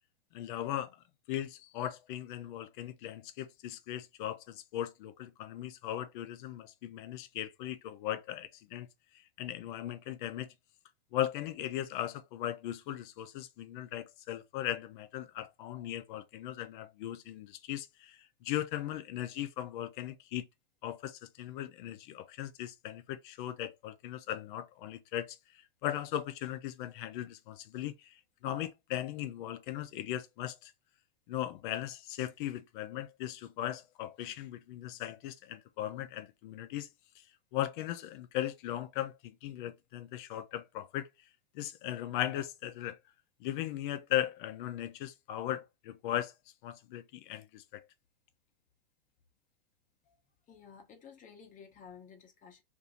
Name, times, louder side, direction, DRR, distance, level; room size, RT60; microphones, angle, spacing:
voice 1, 0.3-1.0 1.3-8.9 9.1-10.5 11.1-20.5 20.8-25.4 25.8-30.7 31.3-36.9 37.5-41.1 41.5-43.0 43.4-46.3 46.6-47.8, left 12 dB, 55° left, 0.6 m, -38 dB
voice 2, 50.5-52.6, left 6 dB, 25° left, 0.9 m, -53 dB
2.8 x 2.7 x 3.7 m
hypercardioid pair, 115°, 31 cm